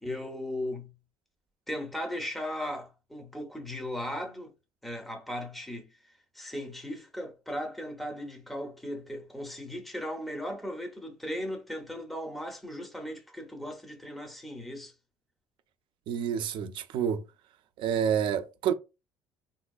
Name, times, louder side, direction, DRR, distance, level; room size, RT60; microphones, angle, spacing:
voice 1, 0.0-1.0 1.7-4.5 4.8-14.9, left 1 dB, ahead, 0.6 m, -37 dB
voice 2, 16.1-17.3 17.8-18.7, right 8 dB, 60° right, 0.5 m, -28 dB
3.8 x 2.6 x 2.3 m
cardioid pair, 140°, 9 cm